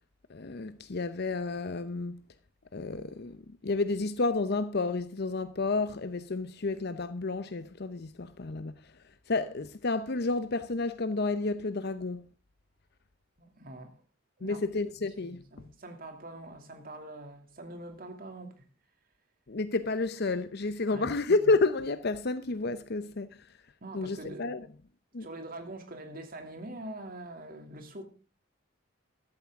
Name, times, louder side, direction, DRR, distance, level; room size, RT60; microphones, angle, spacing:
voice 1, 0.3-2.2 2.7-12.3 14.4-15.4 19.5-23.5 23.9-24.7 25.1-25.3, left 3 dB, 55° left, 0.8 m, -31 dB
voice 2, 13.4-13.9 14.4-14.6 15.2-18.6 20.8-21.1 23.8-24.6 25.2-28.0, right 1 dB, 45° right, 2.7 m, -44 dB
14.0 x 12.5 x 3.6 m
head